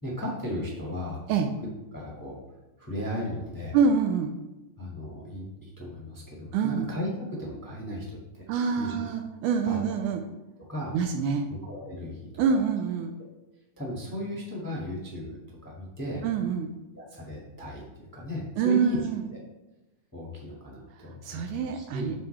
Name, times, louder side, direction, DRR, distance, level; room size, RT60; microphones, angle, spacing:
voice 1, 0.0-1.2 1.9-2.4 2.8-3.8 4.8-8.5 8.8-9.1 9.6-9.8 10.7-10.9 11.5-12.6 13.8-16.2 16.9-19.0 19.3-19.4 20.1-22.1, left 1 dB, 15° left, -4 dB, 0.8 m, -36 dB
voice 2, 3.7-4.3 6.5-6.9 8.5-10.2 10.9-11.5 12.4-13.1 16.2-16.7 18.6-19.2 20.9-22.1, right 6 dB, 85° right, 4 dB, 2.1 m, -26 dB
9.3 x 6.7 x 3.3 m, 1.0 s
omnidirectional pair, 3.6 m